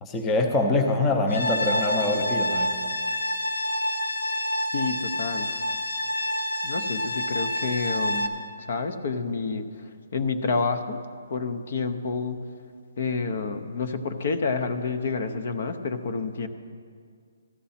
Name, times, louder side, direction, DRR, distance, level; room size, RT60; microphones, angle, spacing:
voice 1, 0.0-2.8, left 2 dB, 10° left, 3 dB, 0.7 m, -24 dB
sound 1, 1.3-8.3, left 1 dB, 80° left, 1.0 m, -28 dB
voice 2, 4.7-5.5 6.6-8.3 8.6-11.0 11.3-12.4 13.0-16.5, left 4 dB, 50° left, 8 dB, 0.7 m, -29 dB
14.0 x 11.5 x 4.3 m, 2.1 s
hypercardioid pair, 170°, 0 cm